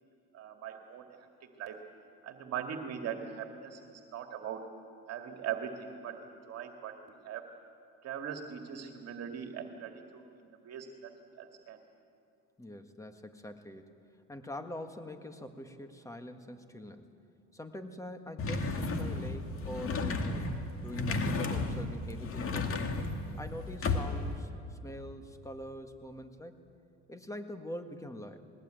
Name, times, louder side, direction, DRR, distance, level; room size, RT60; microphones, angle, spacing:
voice 1, 0.3-1.8 2.2-4.7 5.1-7.5 8.0-10.2 10.6-11.1 11.4-11.8, right 8 dB, 55° right, 4 dB, 2.1 m, -41 dB
voice 2, 12.6-13.9 14.3-17.1 17.5-20.5 20.8-22.8 23.4-26.7 27.1-28.4, left 1 dB, 10° left, 8 dB, 1.8 m, -44 dB
sound 1, 18.4-24.4, left 3 dB, 45° left, 2.3 m, -33 dB
20.5 x 20.0 x 9.1 m, 2.6 s
supercardioid pair, 100°, 30 cm